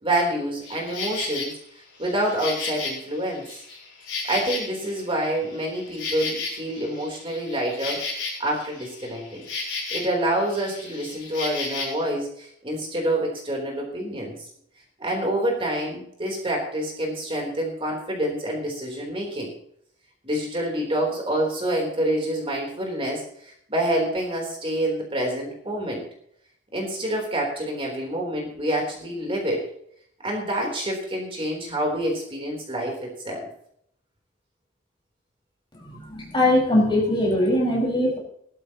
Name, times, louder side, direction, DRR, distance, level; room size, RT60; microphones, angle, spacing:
voice 1, 0.0-1.6 2.0-3.6 4.3-8.0 8.4-9.4 9.9-14.5 15.0-19.5 20.2-26.0 26.7-29.6 30.2-33.5, right 1 dB, 30° right, 0 dB, 3.5 m, -27 dB
Insect, 0.6-1.5 2.0-5.0 5.3-10.2 10.5-12.0, left 4 dB, 70° left, 6.4 m, -33 dB
voice 2, 35.8-38.2, left 1 dB, 25° left, -2 dB, 5.0 m, -21 dB
18.5 x 13.0 x 3.0 m, 0.67 s
head